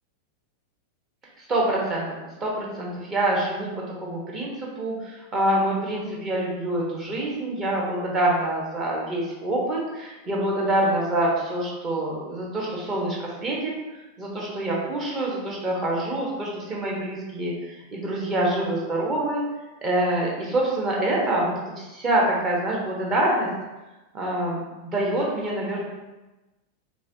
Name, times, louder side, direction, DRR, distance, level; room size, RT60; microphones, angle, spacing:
voice 1, 1.4-2.0 2.4-19.4 19.8-23.5 24.1-25.8, right 1 dB, 25° right, -3 dB, 1.0 m, -26 dB
4.6 x 2.4 x 2.7 m, 1.1 s
figure-of-eight pair, 90°, 0 cm